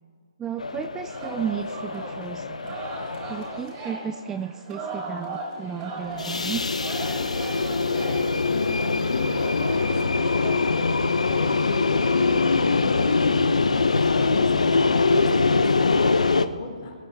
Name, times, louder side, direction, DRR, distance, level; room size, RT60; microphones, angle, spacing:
voice 1, 0.4-2.8 3.3-6.7, right 8 dB, 10° right, 10 dB, 0.3 m, -33 dB
sound 1, 0.6-3.7 6.1-16.5, left 4 dB, 85° left, 0.8 m, -23 dB
Singing, 1.1-10.7, right 2 dB, 30° right, 4.0 m, -38 dB
voice 2, 8.5-13.4 14.1-16.9, left 5 dB, 40° left, -1 dB, 4.0 m, -36 dB
24.0 x 10.5 x 2.8 m, 2.2 s
hypercardioid pair, 145°, 4 cm